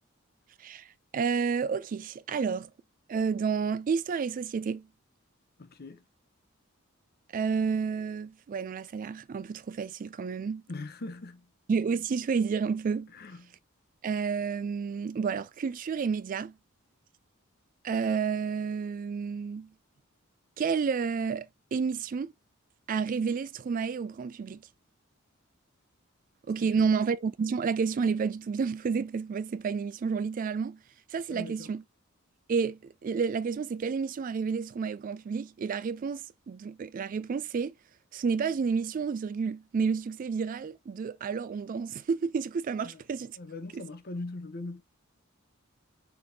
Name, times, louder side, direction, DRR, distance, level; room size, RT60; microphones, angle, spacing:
voice 1, 1.1-2.7 3.1-4.9 7.3-10.6 11.7-13.1 14.0-16.5 17.8-19.7 20.6-22.3 22.9-24.6 26.5-30.8 31.1-31.8 32.5-37.7 38.1-43.4 43.7-43.8, right 5 dB, 40° right, 0.3 m, -30 dB
voice 2, 5.6-6.0 10.7-11.5 13.1-13.6 26.6-26.9 31.3-31.7 42.8-43.0 43.4-44.8, left 2 dB, 50° left, 0.7 m, -41 dB
5.9 x 3.4 x 2.7 m
head